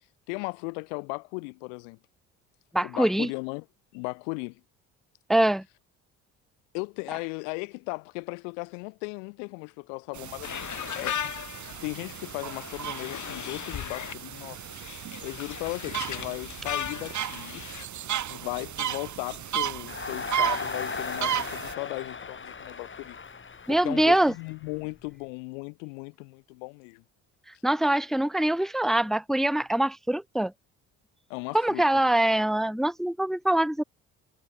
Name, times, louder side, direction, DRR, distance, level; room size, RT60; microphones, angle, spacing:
voice 1, 0.3-2.0 2.8-3.7 3.9-4.6 6.7-11.2 11.8-14.7 15.2-17.7 18.3-23.2 23.7-27.0 31.3-31.9, left 40 dB or more, 85° left, 5.2 m, -37 dB
voice 2, 2.7-3.3 5.3-5.6 23.7-24.3 27.6-30.5 31.5-33.8, right 1 dB, ahead, 0.6 m, -24 dB
sound 1, 10.1-21.7, right 10 dB, 50° right, 2.7 m, -35 dB
sound 2, 10.4-17.8, left 9 dB, 55° left, 7.8 m, -37 dB
Crowd, 19.9-25.1, left 5 dB, 35° left, 6.1 m, -37 dB
hypercardioid pair, 65°, 36 cm